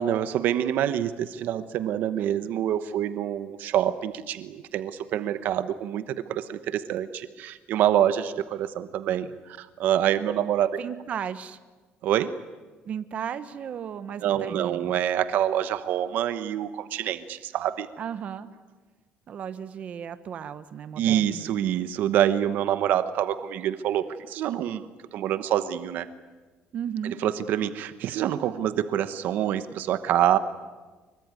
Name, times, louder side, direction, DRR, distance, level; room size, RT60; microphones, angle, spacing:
voice 1, 0.0-9.3 9.6-10.7 12.0-12.4 14.2-17.9 21.0-26.1 27.2-30.4, right 11 dB, 65° right, 12 dB, 1.1 m, -26 dB
voice 2, 10.8-11.6 12.8-14.9 18.0-18.5 19.3-21.5 26.7-27.2, right 8 dB, 40° right, 12 dB, 1.2 m, -35 dB
25.0 x 23.5 x 9.7 m, 1.3 s
cardioid pair, 150°, 3 cm